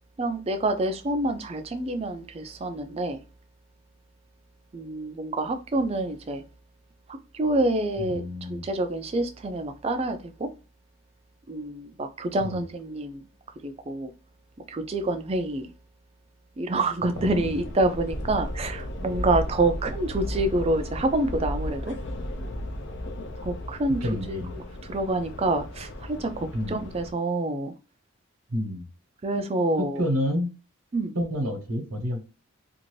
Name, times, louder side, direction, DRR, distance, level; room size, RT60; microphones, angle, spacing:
voice 1, 0.2-3.2 4.7-6.4 7.1-8.2 8.5-10.5 11.5-13.2 13.6-14.1 14.7-15.7 16.6-22.0 23.4-24.0 24.3-24.6 24.9-27.7 29.2-30.0 30.9-31.1, right 2 dB, 25° right, 0.3 m, -27 dB
voice 2, 8.0-8.7 12.4-12.6 17.2-17.5 24.0-24.5 26.5-26.8 28.5-28.8 29.8-30.5 31.1-32.3, equal, 80° right, 1.0 m, -29 dB
sound 1, 17.1-27.1, left 1 dB, 50° left, 0.5 m, -35 dB
2.6 x 2.5 x 3.0 m
head